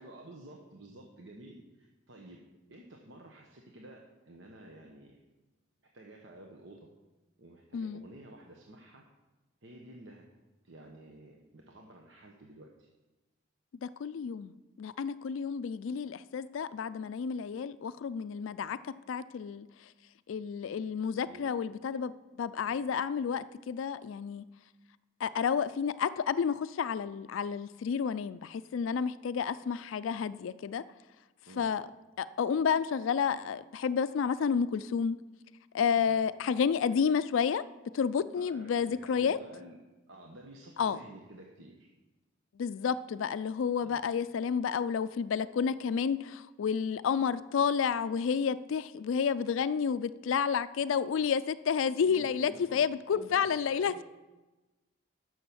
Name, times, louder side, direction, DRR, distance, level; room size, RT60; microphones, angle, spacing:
voice 1, 0.0-2.4 2.7-5.1 5.9-6.8 7.4-9.0 9.6-10.2 10.6-12.9 21.1-21.5 22.7-22.8 31.5-31.7 35.9-36.1 38.4-39.8 40.1-41.9 43.8-44.0 52.0-52.8 53.1-54.0, right 1 dB, 65° right, 1 dB, 1.1 m, -51 dB
voice 2, 13.8-14.5 14.8-18.8 19.1-19.7 20.3-22.1 22.4-24.4 25.2-30.8 31.6-31.9 32.2-35.2 35.7-37.6 37.9-39.4 40.8-41.0 42.6-53.9, left 6 dB, 75° left, 15 dB, 0.3 m, -30 dB
10.5 x 6.4 x 7.0 m, 1.1 s
head